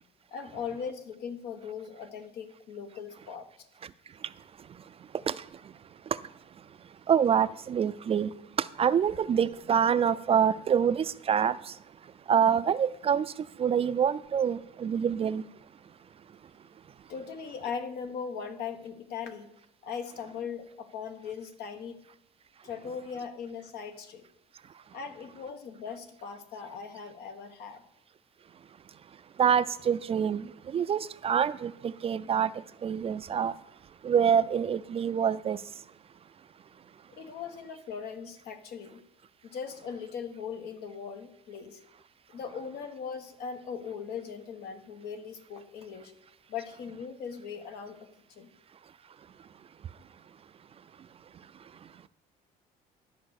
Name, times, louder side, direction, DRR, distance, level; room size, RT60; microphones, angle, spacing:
voice 1, 0.3-3.7 17.1-19.5 19.8-22.0 22.6-24.2 24.9-27.8 37.1-39.0 39.4-41.8 42.3-46.1 46.5-48.5, left 6 dB, 75° left, 1.2 m, -39 dB
voice 2, 7.1-8.3 8.6-11.7 12.3-13.3 13.6-15.4 29.4-32.5 32.8-33.5 34.0-35.6, right 8 dB, 35° right, 0.4 m, -26 dB
12.0 x 5.4 x 6.5 m
cardioid pair, 110°, 17 cm